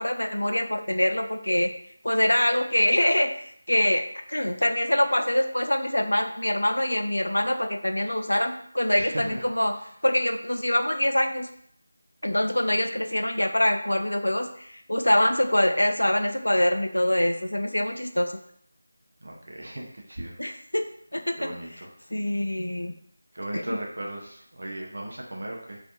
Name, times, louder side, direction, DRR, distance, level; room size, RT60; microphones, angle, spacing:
voice 1, 0.0-1.7 2.0-3.3 3.7-4.0 4.3-9.7 10.0-11.5 12.2-18.4 20.4-20.8 21.1-21.5 22.1-22.9 23.5-23.8, left 1 dB, 75° left, 5 dB, 0.3 m, -24 dB
voice 2, 9.0-9.4 19.2-20.3 21.4-21.7 23.3-25.8, right 1 dB, 55° right, -1 dB, 0.4 m, -36 dB
2.4 x 2.2 x 2.6 m, 0.65 s
figure-of-eight pair, 165°, 0 cm